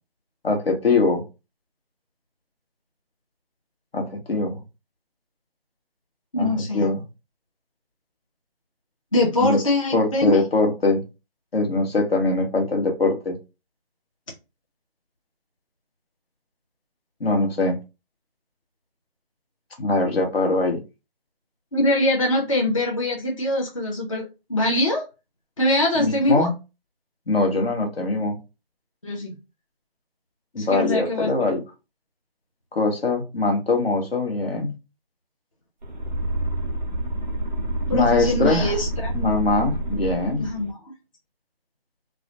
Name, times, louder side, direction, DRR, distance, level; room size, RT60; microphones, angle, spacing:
voice 1, 0.4-1.2 3.9-4.6 6.4-7.0 9.4-9.6 9.9-11.0 11.5-13.4 17.2-17.8 19.8-20.8 26.0-26.5 27.3-28.4 30.5-31.6 32.7-34.8 37.9-38.8 39.1-40.5, left 3 dB, 75° left, 3 dB, 1.0 m, -22 dB
voice 2, 6.3-6.9 9.1-10.4 21.7-24.2 24.5-25.1 25.6-26.5 29.0-29.3 30.6-31.5 37.9-39.1 40.4-40.8, left 1 dB, 35° left, -2 dB, 0.5 m, -23 dB
sound 1, 35.8-40.7, right 1 dB, 50° right, 0.4 m, -28 dB
2.4 x 2.1 x 2.7 m, 0.27 s
figure-of-eight pair, 160°, 30 cm